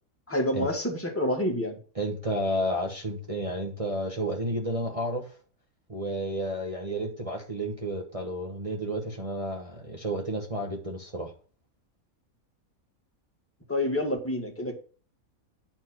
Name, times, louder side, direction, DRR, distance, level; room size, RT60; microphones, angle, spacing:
voice 1, 0.3-1.7 13.7-14.7, left 1 dB, 10° left, 1 dB, 1.7 m, -28 dB
voice 2, 1.9-5.3 5.9-11.3, right 1 dB, 25° right, 0 dB, 1.2 m, -31 dB
9.6 x 4.4 x 5.9 m, 0.38 s
omnidirectional pair, 1.5 m